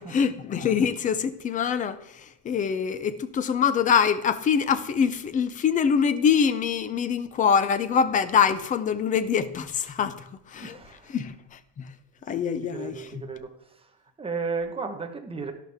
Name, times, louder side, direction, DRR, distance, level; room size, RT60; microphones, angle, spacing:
voice 1, 0.0-10.8 11.1-11.9 12.3-13.2, left 7 dB, 20° left, 0.3 m, -24 dB
voice 2, 10.6-11.1 12.7-13.9 14.2-15.5, right 4 dB, 10° right, 1.0 m, -34 dB
12.0 x 12.0 x 3.5 m
cardioid pair, 175°, 47 cm